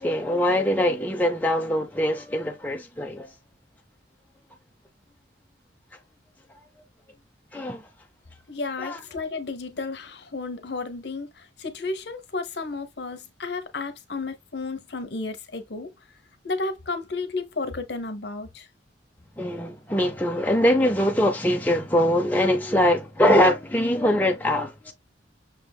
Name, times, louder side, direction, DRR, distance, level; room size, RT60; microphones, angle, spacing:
voice 1, 0.0-3.3 7.5-7.9 8.8-9.0 19.4-24.9, left 1 dB, 10° left, 0.5 m, -22 dB
voice 2, 8.5-15.9 16.4-18.7, left 3 dB, 65° left, 0.8 m, -32 dB
6.0 x 3.3 x 2.2 m
head